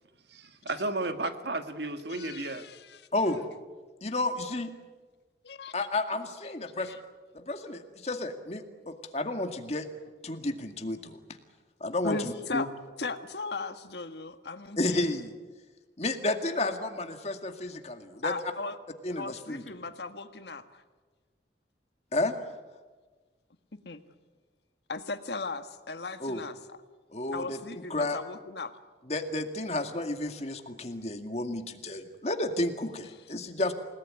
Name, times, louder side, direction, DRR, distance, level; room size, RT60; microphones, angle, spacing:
voice 1, 0.3-2.6, right 2 dB, 70° right, 8 dB, 1.8 m, -33 dB
voice 2, 2.1-3.0 5.4-5.7 6.9-7.0 9.2-9.3 12.0-12.7 13.0-15.1 18.2-18.8 19.1-20.8 23.8-24.0 24.9-26.8 27.3-28.7, left 3 dB, 70° left, 9 dB, 1.6 m, -37 dB
voice 3, 3.1-3.4 4.0-4.7 5.7-6.9 7.3-9.9 10.2-11.2 11.8-12.7 14.8-15.3 16.0-18.3 19.0-19.6 22.1-22.3 26.2-26.4 27.1-27.6 27.9-28.2 29.1-33.7, left 2 dB, 35° left, 6 dB, 2.1 m, -31 dB
29.0 x 18.5 x 9.8 m, 1.3 s
head